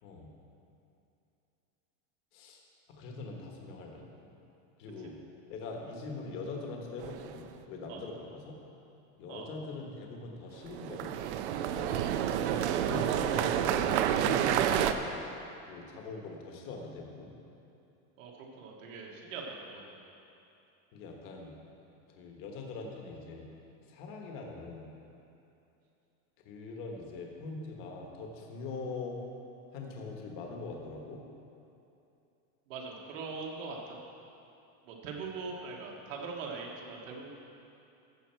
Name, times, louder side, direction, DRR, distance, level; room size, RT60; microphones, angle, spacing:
voice 1, 0.0-0.3 2.3-2.6 3.0-4.0 4.8-5.1 5.5-8.5 9.2-11.2 11.6-12.0 12.7-15.1 15.7-17.3 20.9-21.5 22.2-23.4 23.9-24.9 26.4-29.2 29.7-31.2, left 3 dB, 35° left, 1 dB, 1.2 m, -42 dB
sound 1, 7.0-7.5 10.6-14.9, right 10 dB, 65° right, 0.6 m, -29 dB
voice 2, 18.6-20.0 32.7-34.0 34.9-37.3, right 4 dB, 80° right, -1 dB, 1.9 m, -41 dB
14.5 x 6.2 x 4.5 m, 2.8 s
supercardioid pair, 180°, 38 cm